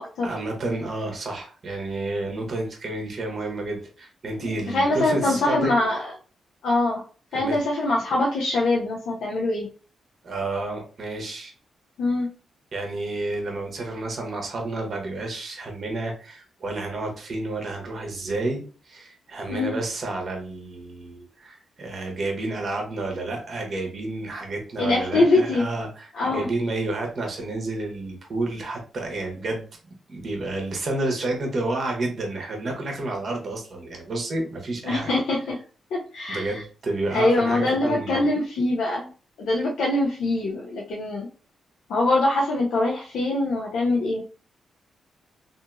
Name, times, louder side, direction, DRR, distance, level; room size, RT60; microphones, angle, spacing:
voice 1, 0.2-5.7 7.3-7.6 10.2-11.5 12.7-29.7 30.1-35.1 36.3-38.2, right 2 dB, 50° right, 2 dB, 1.0 m, -30 dB
voice 2, 4.7-6.1 6.6-7.0 7.3-9.7 12.0-12.3 19.5-19.8 24.8-25.7 26.1-26.5 34.8-35.6 35.9-36.5 37.1-39.1 39.4-41.3 41.9-44.2, left 2 dB, 85° left, -3 dB, 0.6 m, -23 dB
2.8 x 2.6 x 2.3 m, 0.38 s
cardioid pair, 80°, 0 cm